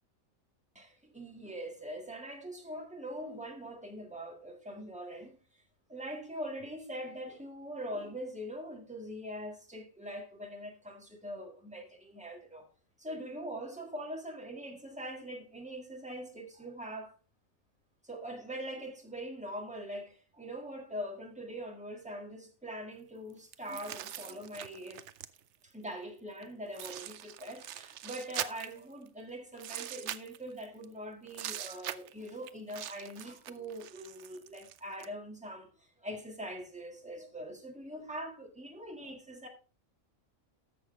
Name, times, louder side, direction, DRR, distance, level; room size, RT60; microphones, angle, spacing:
voice 1, 0.8-5.4 5.9-12.7 13.0-17.1 18.0-25.0 25.6-39.5, equal, 5° right, 1.7 m, -43 dB
sound 1, 23.5-25.6 26.4-26.5 26.7-29.1 29.6-30.9 31.3-35.1, right 11 dB, 65° right, 0.8 m, -42 dB
13.5 x 6.5 x 3.3 m
omnidirectional pair, 1.4 m